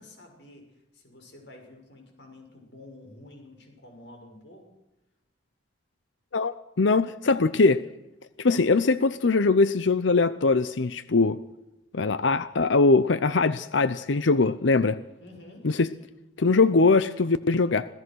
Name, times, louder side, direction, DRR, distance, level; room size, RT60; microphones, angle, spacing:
voice 1, 0.0-4.7 15.2-15.7, left 1 dB, 70° left, 3 dB, 6.5 m, -49 dB
voice 2, 6.3-7.8 8.4-11.4 11.9-15.0 15.6-15.9 16.4-17.9, left 3 dB, 85° left, 14 dB, 0.7 m, -22 dB
26.5 x 17.5 x 6.3 m, 1.0 s
head